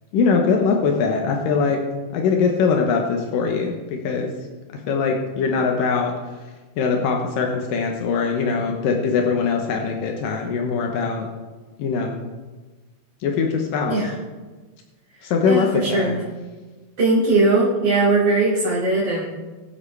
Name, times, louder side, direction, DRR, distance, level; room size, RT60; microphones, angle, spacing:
voice 1, 0.1-1.8 2.1-3.7 4.0-4.3 4.9-6.1 6.8-11.3 11.8-12.2 13.2-14.0 15.2-16.1, left 5 dB, 80° left, 1 dB, 2.7 m, -21 dB
voice 2, 15.4-16.2 17.0-19.2, right 2 dB, 35° right, -9 dB, 2.9 m, -19 dB
22.0 x 7.6 x 3.4 m, 1.3 s
omnidirectional pair, 3.9 m